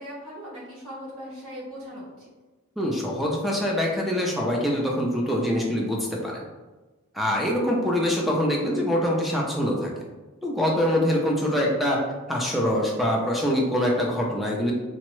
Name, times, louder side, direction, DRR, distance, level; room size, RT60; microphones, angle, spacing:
voice 1, 0.0-2.3, equal, 90° right, -7 dB, 1.5 m, -39 dB
voice 2, 2.8-6.5 7.1-9.9 10.4-12.0 12.3-14.7, equal, ahead, -2 dB, 0.4 m, -24 dB
3.4 x 2.0 x 3.0 m, 1.2 s
head